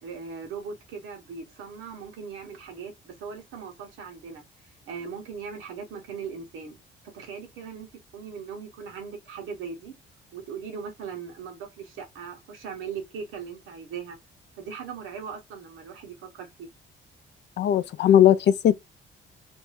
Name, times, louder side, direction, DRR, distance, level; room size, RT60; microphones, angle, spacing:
voice 1, 0.0-6.8 7.1-7.9 8.1-10.0 10.3-14.2 14.6-16.7, right 6 dB, 90° right, 1.0 m, -39 dB
voice 2, 17.6-18.7, left 10 dB, 60° left, 0.4 m, -18 dB
2.6 x 2.3 x 3.1 m
cardioid pair, 90°, 20 cm